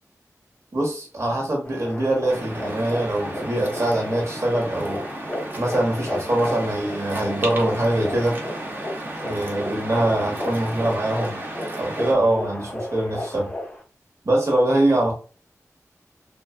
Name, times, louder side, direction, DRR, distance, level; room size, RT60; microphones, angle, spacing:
voice 1, 0.7-5.0 5.6-8.4 9.2-11.4 11.8-13.5 14.2-15.1, right 1 dB, 55° right, 1.1 m, -23 dB
sound 1, 1.6-13.8, left 1 dB, 20° left, 0.6 m, -34 dB
Waves surf, 2.3-12.1, right 1 dB, 35° right, 0.7 m, -35 dB
2.4 x 2.3 x 2.3 m
cardioid pair, 55°, 6 cm